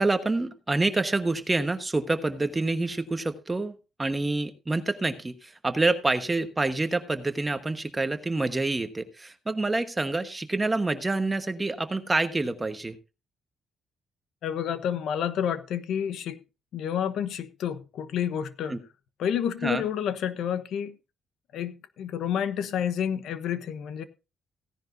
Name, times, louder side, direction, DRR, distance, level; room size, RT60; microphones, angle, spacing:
voice 1, 0.0-13.0 18.7-18.8 19.6-19.8, right 2 dB, 20° right, 1.2 m, -27 dB
voice 2, 14.4-16.4 16.7-18.8 19.2-20.9 21.5-24.0, left 9 dB, 75° left, 1.1 m, -29 dB
16.5 x 10.5 x 2.6 m
cardioid pair, 90°, 0 cm